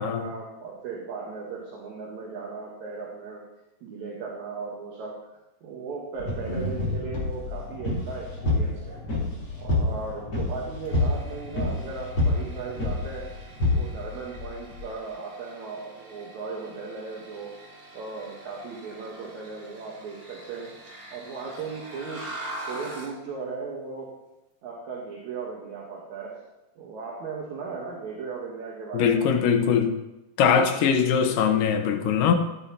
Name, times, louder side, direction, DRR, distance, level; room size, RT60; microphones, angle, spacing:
voice 1, 0.0-3.4 3.8-5.2 5.6-9.0 9.6-13.3 13.7-17.5 17.9-20.7 21.1-24.1 24.6-26.4 26.8-29.4 30.7-30.8 31.3-31.5, right 4 dB, 70° right, -3 dB, 2.6 m, -37 dB
sound 1, 6.2-14.9, left 2 dB, 35° left, 4.1 m, -28 dB
sound 2, 10.8-23.2, right 1 dB, 50° right, 3.7 m, -44 dB
voice 2, 28.9-30.0 30.4-32.3, left 7 dB, 90° left, 6 dB, 2.6 m, -21 dB
13.0 x 10.5 x 2.9 m, 0.96 s
omnidirectional pair, 3.6 m